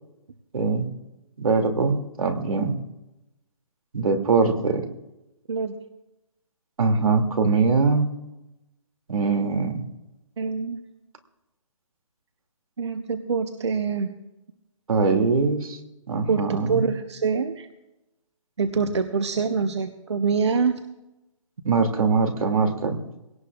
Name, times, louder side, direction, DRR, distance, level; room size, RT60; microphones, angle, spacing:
voice 1, 0.5-0.9 1.4-2.8 3.9-4.9 6.8-8.1 9.1-9.8 14.9-15.8 16.1-16.9 21.6-23.0, right 4 dB, 85° right, 5 dB, 2.7 m, -22 dB
voice 2, 10.4-10.8 12.8-14.1 16.3-17.7 18.6-20.8, right 5 dB, 55° right, 8 dB, 1.0 m, -25 dB
22.0 x 17.5 x 2.5 m, 0.96 s
hypercardioid pair, 175°, 18 cm